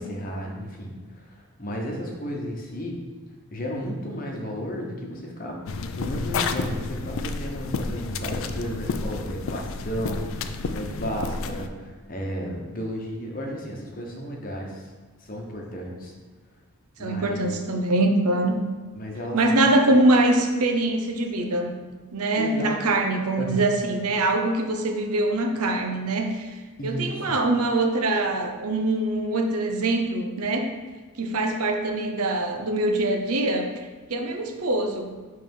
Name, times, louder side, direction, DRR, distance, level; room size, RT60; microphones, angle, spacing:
voice 1, 0.1-3.0 3.5-14.9 15.2-16.1 17.0-17.4 19.0-19.6 22.4-22.8 23.4-23.6 26.8-27.3, equal, 40° left, 0 dB, 0.9 m, -33 dB
sound 1, 5.7-11.7, left 4 dB, 65° left, 0.4 m, -30 dB
voice 2, 17.0-18.6 19.3-21.7 22.1-30.7 31.2-33.7 34.1-35.1, right 2 dB, 90° right, 3 dB, 0.7 m, -23 dB
5.5 x 3.4 x 5.3 m, 1.4 s
head